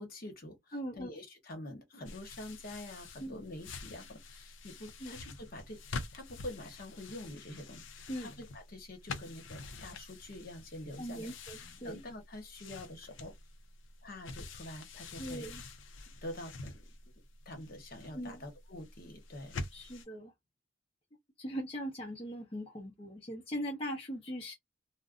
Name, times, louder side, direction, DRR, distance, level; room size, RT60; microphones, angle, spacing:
voice 1, 0.0-11.3 11.6-13.3 14.0-15.4 16.2-17.1 17.4-19.5, left 1 dB, 50° left, 1.1 m, -46 dB
voice 2, 0.7-1.2 3.2-3.4 5.0-5.2 8.1-8.3 11.0-12.0 15.2-15.6 18.1-18.4 19.7-20.3 21.4-24.5, equal, 30° left, 0.8 m, -40 dB
sound 1, 2.0-20.0, left 3 dB, 80° left, 0.6 m, -47 dB
2.6 x 2.1 x 3.6 m
head